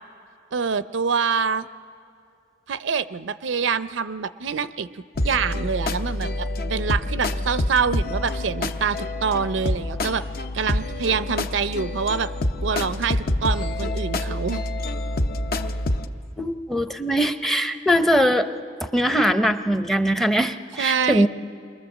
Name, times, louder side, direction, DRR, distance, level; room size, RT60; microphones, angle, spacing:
voice 1, 0.5-1.7 2.7-4.9 5.2-10.2 10.5-12.3 12.6-14.6 20.8-21.3, right 6 dB, 85° right, 14 dB, 0.5 m, -25 dB
sound 1, 5.1-16.1, left 1 dB, 50° left, 0.7 m, -27 dB
voice 2, 16.4-18.5 18.8-21.3, equal, ahead, 8 dB, 0.6 m, -21 dB
28.5 x 22.0 x 7.3 m, 2.4 s
head